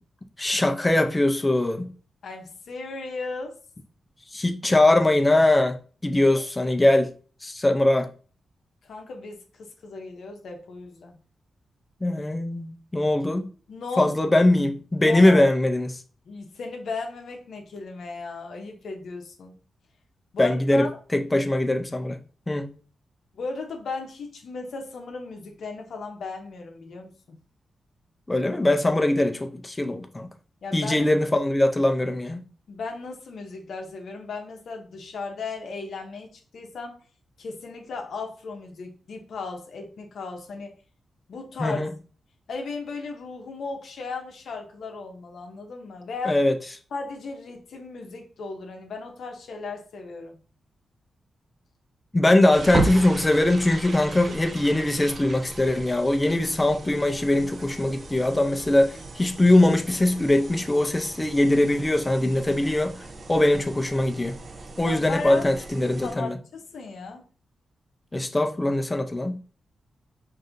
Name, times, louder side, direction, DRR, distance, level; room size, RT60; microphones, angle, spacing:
voice 1, 0.4-1.9 4.3-5.8 6.0-7.1 7.4-8.1 12.0-13.5 14.0-16.0 20.4-22.2 22.5-22.7 28.3-30.3 30.7-32.4 41.6-41.9 46.2-46.5 52.1-63.0 63.3-64.4 64.8-66.4 68.1-69.4, left 1 dB, 15° left, 0.5 m, -21 dB
voice 2, 2.2-3.6 8.8-11.2 13.7-14.4 15.0-15.5 16.3-19.5 20.3-20.9 23.3-27.4 30.6-31.1 32.7-37.0 37.4-40.7 41.3-41.9 42.5-46.4 46.9-50.4 64.8-65.5 66.0-67.3, left 4 dB, 75° left, 0.8 m, -36 dB
sound 1, 52.5-66.1, right 3 dB, 45° right, 0.6 m, -36 dB
5.3 x 2.6 x 2.5 m
cardioid pair, 95°, 0 cm